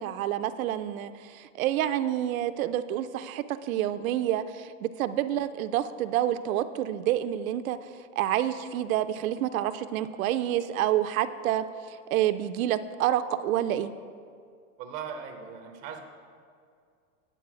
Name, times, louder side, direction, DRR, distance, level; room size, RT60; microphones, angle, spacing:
voice 1, 0.0-13.9, right 12 dB, 85° right, 11 dB, 0.6 m, -28 dB
voice 2, 14.8-16.0, right 7 dB, 20° right, 3 dB, 0.4 m, -39 dB
9.1 x 4.0 x 7.2 m, 2.2 s
supercardioid pair, 160°, 41 cm